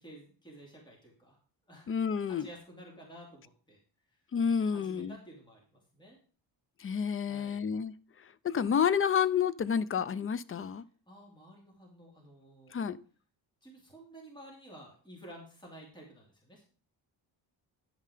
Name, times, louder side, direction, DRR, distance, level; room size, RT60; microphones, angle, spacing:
voice 1, 0.0-1.4 1.7-1.9 2.3-3.8 4.1-4.2 4.7-6.2 7.2-7.6 11.1-12.7 13.6-16.6, right 1 dB, 10° left, 2.8 m, -52 dB
voice 2, 1.9-2.5 4.3-5.2 6.8-10.8 12.7-13.0, left 7 dB, 30° left, 0.5 m, -30 dB
10.5 x 5.6 x 5.0 m
cardioid pair, 120°, 42 cm